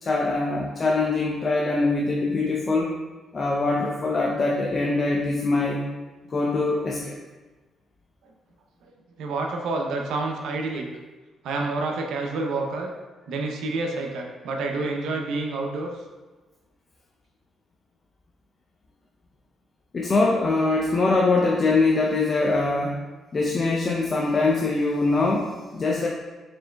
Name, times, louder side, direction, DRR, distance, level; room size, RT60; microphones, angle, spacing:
voice 1, 0.0-2.9 3.3-5.8 6.3-7.2 19.9-23.0 23.3-26.1, left 3 dB, 40° left, -2 dB, 0.5 m, -23 dB
voice 2, 9.2-10.9 11.4-12.9 13.3-16.0, right 3 dB, 80° right, 1 dB, 0.5 m, -28 dB
4.3 x 3.8 x 2.2 m, 1.2 s
cardioid pair, 90°, 0 cm